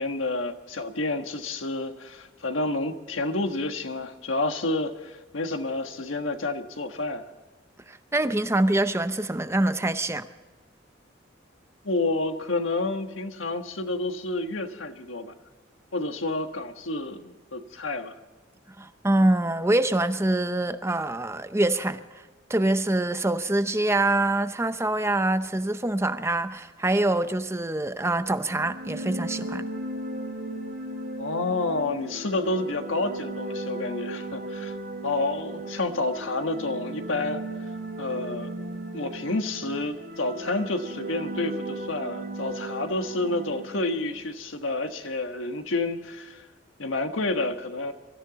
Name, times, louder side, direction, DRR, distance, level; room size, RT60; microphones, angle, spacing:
voice 1, 0.0-7.2 11.8-15.3 15.9-18.1 31.2-34.8 35.0-37.4 38.0-38.5 38.9-46.4 46.8-47.9, left 2 dB, 90° left, 1.4 m, -29 dB
voice 2, 7.9-10.3 18.8-22.0 22.5-29.7, right 1 dB, 15° right, 0.7 m, -25 dB
sound 1, 28.5-44.2, right 1 dB, 55° right, 2.6 m, -36 dB
24.0 x 13.5 x 4.0 m
head